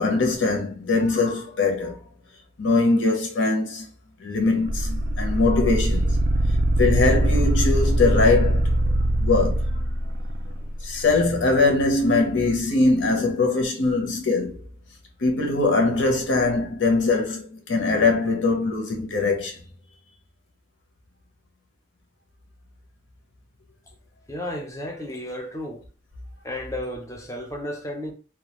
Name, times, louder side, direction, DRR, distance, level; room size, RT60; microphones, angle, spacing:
voice 1, 0.0-2.0 2.6-3.9 4.2-6.2 6.8-8.8 9.2-9.8 10.8-14.6 15.2-19.6, left 3 dB, 90° left, 0.7 m, -22 dB
sound 1, 4.7-10.8, right 1 dB, 65° right, 0.4 m, -22 dB
voice 2, 24.3-25.9 26.4-28.1, left 1 dB, 15° left, 0.5 m, -33 dB
2.3 x 2.2 x 2.9 m
head